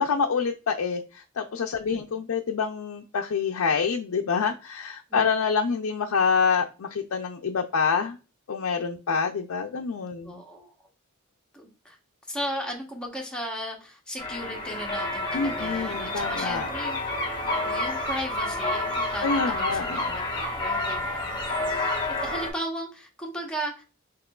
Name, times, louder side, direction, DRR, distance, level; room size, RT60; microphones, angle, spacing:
voice 1, 0.0-8.2 8.5-10.4 15.3-16.7 19.2-20.1, left 5 dB, 75° left, 3 dB, 0.5 m, -27 dB
voice 2, 10.2-10.7 11.5-12.0 12.3-17.0 17.4-23.8, equal, 5° left, 0 dB, 1.0 m, -36 dB
sound 1, 14.2-22.5, left 2 dB, 20° left, 1.4 m, -29 dB
5.8 x 3.0 x 2.3 m, 0.31 s
head